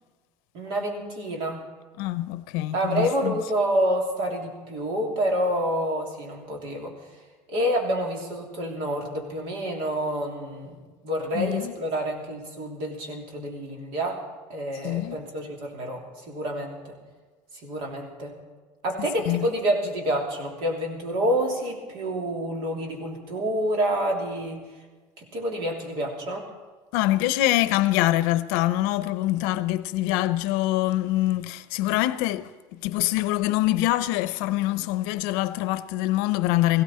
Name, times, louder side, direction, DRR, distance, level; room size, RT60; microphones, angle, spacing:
voice 1, 0.5-1.6 2.7-6.9 7.5-14.2 14.5-16.9 17.6-18.4 18.8-24.6 25.2-26.5, equal, 60° right, 3.0 m, -28 dB
voice 2, 2.0-3.4 11.3-11.7 14.8-15.2 19.0-19.5 26.9-36.8, left 16 dB, 80° left, 0.6 m, -25 dB
17.5 x 16.0 x 4.4 m
cardioid pair, 170°, 10 cm